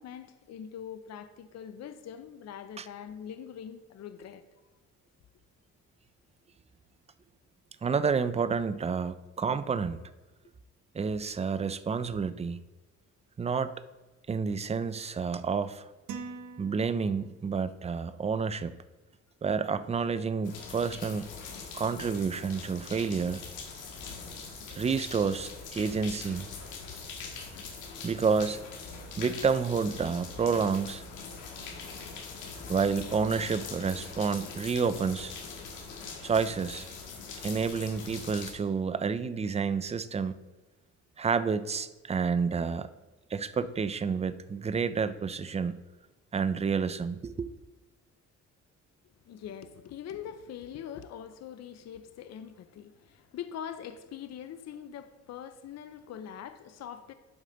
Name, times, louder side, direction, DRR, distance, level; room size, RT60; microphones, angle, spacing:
voice 1, 0.0-4.4 26.0-26.1 26.9-27.0 49.3-57.1, left 9 dB, 60° left, 11 dB, 0.6 m, -43 dB
voice 2, 7.8-10.0 10.9-12.6 13.4-13.8 14.3-15.9 16.6-18.8 19.4-21.3 21.7-23.4 24.7-26.5 28.0-28.6 29.2-31.0 32.7-35.3 36.2-36.9 37.4-40.3 41.2-42.9 43.3-45.8 46.3-47.5, right 5 dB, 20° right, 13 dB, 0.4 m, -29 dB
sound 1, 16.1-17.6, right 5 dB, 90° right, 0.8 m, -43 dB
sound 2, 20.4-38.5, left 4 dB, 85° left, 1.7 m, -42 dB
11.5 x 4.9 x 3.9 m, 1.2 s
cardioid pair, 90°, 30 cm